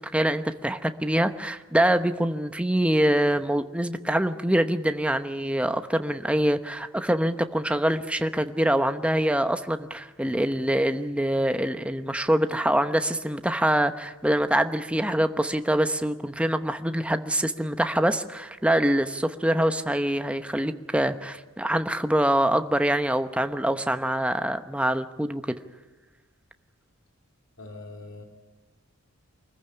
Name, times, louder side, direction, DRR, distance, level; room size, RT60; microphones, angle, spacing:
voice 1, 0.0-25.6, right 1 dB, 5° right, 9 dB, 0.9 m, -25 dB
voice 2, 27.6-28.2, left 2 dB, 70° left, 2 dB, 2.6 m, -42 dB
24.5 x 15.0 x 9.7 m, 1.2 s
head